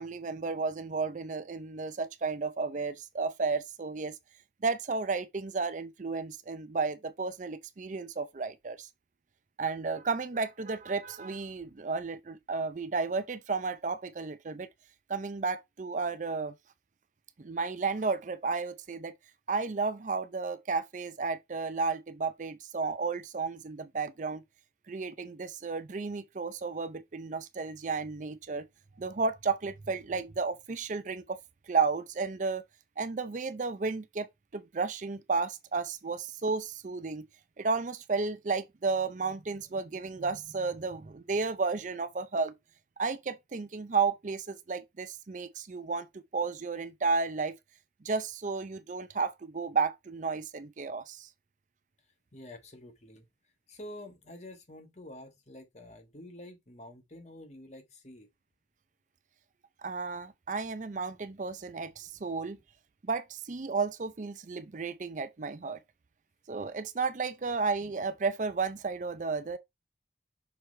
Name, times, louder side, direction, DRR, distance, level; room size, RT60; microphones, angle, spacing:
voice 1, 0.0-4.2 4.6-8.9 9.6-14.7 15.1-16.5 17.4-19.1 19.5-24.4 24.9-28.7 29.0-31.4 31.7-32.6 33.0-34.3 34.5-37.2 37.6-42.5 43.0-47.6 48.0-51.3 59.8-62.6 63.0-65.8 66.5-69.6, right 4 dB, 45° right, 0.5 m, -33 dB
voice 2, 52.3-53.3 53.7-58.3, left 1 dB, 40° left, 1.5 m, -48 dB
6.1 x 4.8 x 3.2 m
head